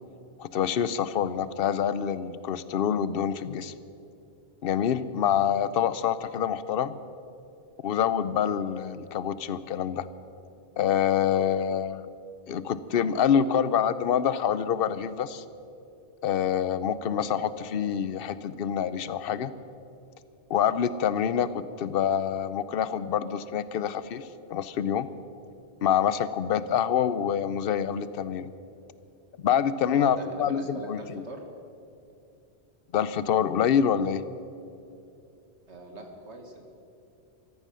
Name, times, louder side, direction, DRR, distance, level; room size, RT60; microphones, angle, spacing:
voice 1, 0.4-3.7 4.6-7.0 7.8-10.1 10.8-12.1 12.5-15.4 16.2-19.5 20.5-25.1 25.8-28.5 29.4-31.0 32.9-34.2, left 8 dB, 60° left, 15 dB, 0.8 m, -26 dB
voice 2, 29.9-31.4 35.7-36.7, right 1 dB, 90° right, 3 dB, 2.2 m, -41 dB
14.5 x 14.5 x 6.3 m, 2.7 s
omnidirectional pair, 1.1 m